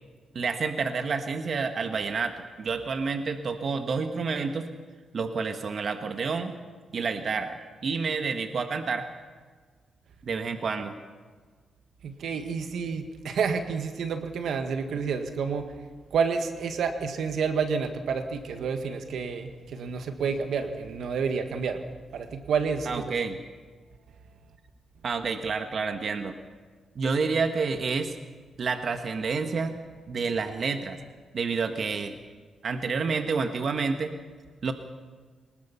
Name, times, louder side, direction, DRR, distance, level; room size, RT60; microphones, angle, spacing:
voice 1, 0.3-4.7 5.1-6.5 6.9-9.1 10.2-10.9 22.8-23.4 25.0-26.3 26.9-28.1 28.6-29.7 30.1-31.0 31.3-32.1 32.6-34.1 34.6-34.7, right 4 dB, 60° right, 6 dB, 1.4 m, -29 dB
voice 2, 12.0-15.7 16.1-21.8 22.1-23.0, right 5 dB, 75° right, 7 dB, 1.7 m, -29 dB
24.0 x 20.5 x 5.6 m, 1.5 s
cardioid pair, 75°, 0 cm